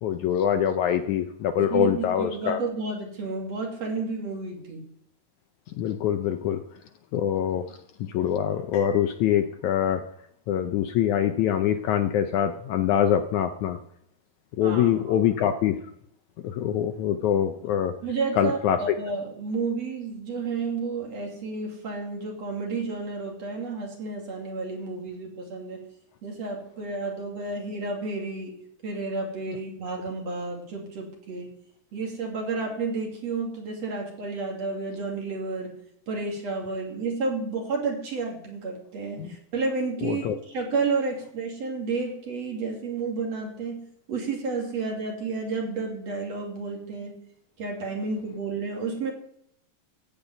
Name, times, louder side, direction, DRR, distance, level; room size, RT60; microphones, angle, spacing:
voice 1, 0.0-2.6 5.7-6.6 7.1-10.0 10.5-13.8 14.6-15.8 16.4-17.9 18.4-19.0 39.2-39.3 40.0-40.4, left 9 dB, 75° left, 7 dB, 1.9 m, -24 dB
voice 2, 1.5-4.8 14.6-14.9 18.0-25.9 26.2-31.6 31.9-35.8 36.1-47.2 47.6-49.1, right 4 dB, 50° right, 0 dB, 3.5 m, -31 dB
14.5 x 5.4 x 9.1 m, 0.71 s
omnidirectional pair, 3.9 m